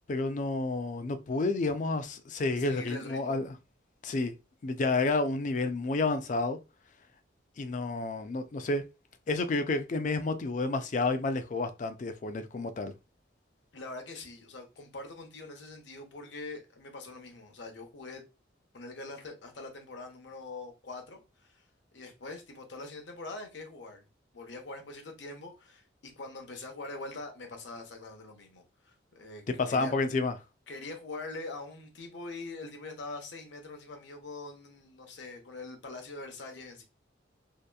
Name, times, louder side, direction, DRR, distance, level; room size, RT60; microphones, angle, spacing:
voice 1, 0.1-3.4 4.0-4.3 4.6-6.6 7.6-8.8 9.3-12.9 29.6-30.3, left 3 dB, 40° left, 0.3 m, -30 dB
voice 2, 2.6-3.3 13.7-18.2 18.7-21.6 21.9-24.1 24.3-29.9 30.7-36.8, left 2 dB, 70° left, 0.7 m, -43 dB
2.8 x 2.5 x 2.2 m
head